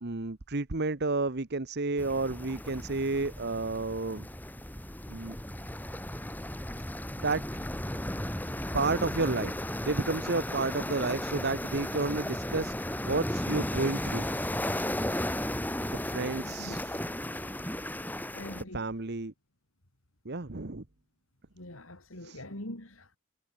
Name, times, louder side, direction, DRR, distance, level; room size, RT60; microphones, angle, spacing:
voice 1, 0.0-4.3 5.1-5.4 7.2-7.4 8.7-9.5 9.8-14.3 15.9-17.0 18.7-19.3 20.2-20.8 22.2-22.4, right 3 dB, 50° right, 1.2 m, -31 dB
sound 1, 2.0-18.6, left 1 dB, 10° left, 4.2 m, -35 dB
voice 2, 16.4-17.1 18.3-18.9 21.6-23.2, left 1 dB, 70° left, 4.1 m, -44 dB
head